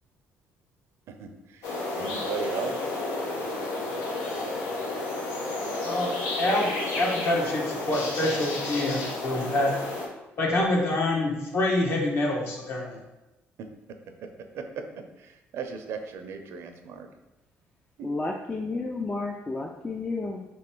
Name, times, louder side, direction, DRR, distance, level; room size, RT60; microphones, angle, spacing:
voice 1, 1.1-2.9 3.4-3.5 14.5-14.8 15.2-17.1 18.0-18.1, right 6 dB, 70° right, 6 dB, 0.5 m, -37 dB
sound 1, 1.6-10.1, left 2 dB, 90° left, 0.8 m, -31 dB
voice 2, 6.4-6.7 7.0-9.7 10.4-13.0, left 1 dB, 55° left, -2 dB, 1.2 m, -26 dB
voice 3, 18.0-20.4, left 3 dB, 20° left, 1 dB, 0.4 m, -31 dB
3.3 x 3.1 x 4.4 m, 1.0 s
cardioid pair, 95°, 5 cm